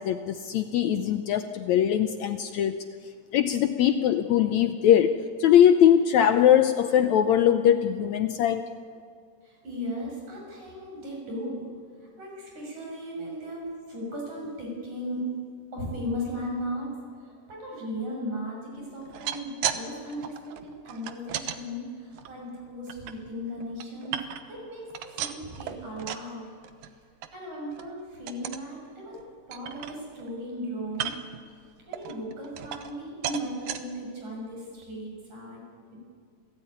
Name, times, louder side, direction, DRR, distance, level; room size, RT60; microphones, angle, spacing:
voice 1, 0.0-2.8 3.3-5.1 5.4-8.6, left 10 dB, 70° left, 9 dB, 1.8 m, -21 dB
voice 2, 9.4-15.5 15.7-24.2 24.4-26.6 26.8-26.9 27.3-31.1 31.9-35.6 35.9-36.0, equal, 60° right, -1 dB, 7.9 m, -36 dB
sound 1, 19.0-19.8 20.1-21.6 22.1-23.1 23.6-24.6 24.9-26.3 26.6-26.9 27.2-27.3 27.7-27.9 28.3-28.7 29.1-29.2 29.5-30.3 30.9-31.4 31.9-33.0 33.2-33.8 34.4-34.5 34.8-34.9, right 10 dB, 85° right, 2.7 m, -35 dB
28.0 x 17.0 x 9.7 m, 2.2 s
omnidirectional pair, 3.8 m